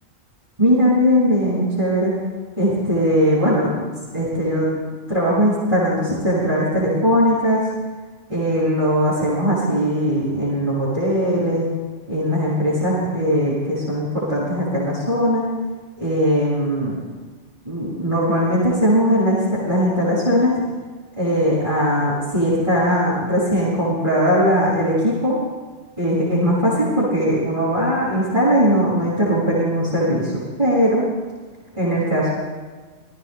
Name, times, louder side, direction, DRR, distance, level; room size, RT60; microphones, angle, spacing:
voice 1, 0.6-2.1 2.6-4.7 5.1-7.6 8.3-11.7 12.1-15.4 16.0-17.0 17.6-20.5 21.2-25.4 26.0-31.0 31.8-32.3, equal, 25° right, -12 dB, 6.8 m, -19 dB
29.5 x 22.0 x 2.2 m, 1.4 s
omnidirectional pair, 1.3 m